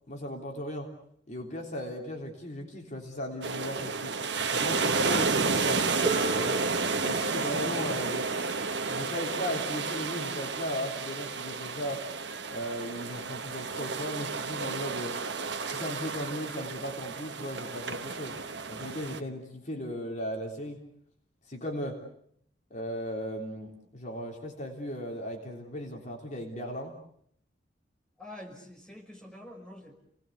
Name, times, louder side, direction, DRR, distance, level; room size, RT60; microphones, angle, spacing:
voice 1, 0.1-0.9 1.3-4.2 4.5-5.8 6.4-6.6 7.0-8.5 8.9-12.0 12.5-15.2 15.6-18.4 18.7-20.8 21.4-22.0 22.7-27.0, equal, 40° left, 1 dB, 3.5 m, -37 dB
sound 1, 3.4-19.2, right 4 dB, 65° right, 1.3 m, -31 dB
Harp, 6.1-11.8 12.9-13.0, right 2 dB, 25° right, 1.1 m, -40 dB
voice 2, 28.2-29.9, left 1 dB, 5° left, 1 dB, 5.5 m, -46 dB
30.0 x 19.0 x 8.2 m, 0.69 s
head